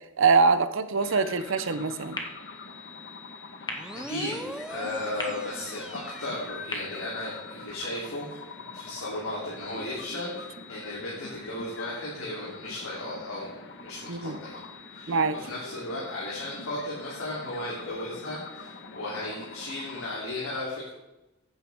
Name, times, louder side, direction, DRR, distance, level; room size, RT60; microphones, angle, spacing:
voice 1, 0.2-2.2 14.1-14.4 15.1-15.4, right 4 dB, 65° right, 12 dB, 0.7 m, -23 dB
sound 1, 1.0-20.1, left 4 dB, 55° left, 1.2 m, -44 dB
sound 2, 2.1-8.1, left 2 dB, 20° left, 1.4 m, -42 dB
sound 3, 3.7-7.2, right 1 dB, 5° right, 0.4 m, -42 dB
voice 2, 4.1-14.6 14.9-20.9, left 1 dB, 80° left, -6 dB, 3.2 m, -35 dB
15.5 x 8.9 x 3.6 m, 0.99 s
head